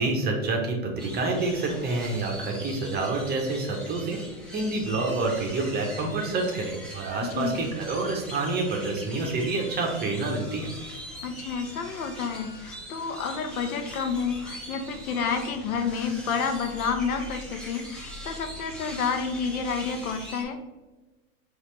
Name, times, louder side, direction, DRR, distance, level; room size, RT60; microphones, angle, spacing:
voice 1, 0.0-4.2 4.5-10.7, right 3 dB, 25° right, 1 dB, 0.7 m, -28 dB
sound 1, 1.0-20.4, equal, ahead, 0.4 m, -42 dB
voice 2, 7.2-7.6 11.2-20.6, left 5 dB, 80° left, 7 dB, 0.7 m, -30 dB
4.0 x 2.5 x 3.1 m, 1.2 s
hypercardioid pair, 115°, 43 cm